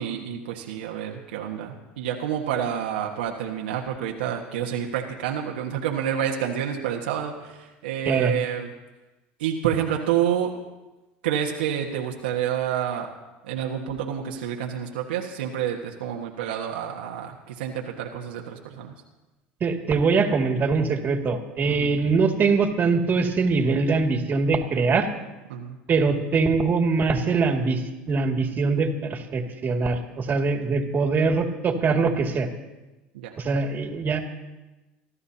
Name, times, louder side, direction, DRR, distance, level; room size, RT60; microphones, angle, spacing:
voice 1, 0.0-8.7 9.4-10.5 11.2-13.1 13.4-18.9 21.6-21.9 25.5-25.8 33.1-33.3, right 9 dB, 90° right, 1 dB, 1.5 m, -28 dB
voice 2, 8.0-8.4 19.6-25.1 25.9-32.5 33.4-34.2, right 4 dB, 40° right, 2 dB, 2.3 m, -23 dB
25.5 x 12.5 x 2.9 m, 1.1 s
supercardioid pair, 90°, 5 cm